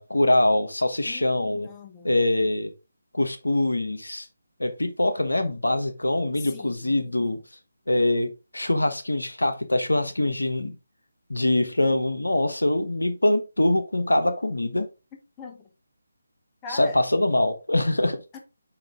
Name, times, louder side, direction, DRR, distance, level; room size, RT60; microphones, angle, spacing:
voice 1, 0.0-1.7 2.0-2.7 3.1-4.3 4.6-7.4 7.9-10.8 11.3-14.9 16.7-18.2, left 1 dB, 80° left, 1.3 m, -23 dB
voice 2, 1.0-2.2 6.4-7.4 15.4-15.7 16.6-17.0 18.3-18.4, left 5 dB, 15° left, 1.1 m, -42 dB
5.7 x 5.2 x 3.7 m
figure-of-eight pair, 155°, 0 cm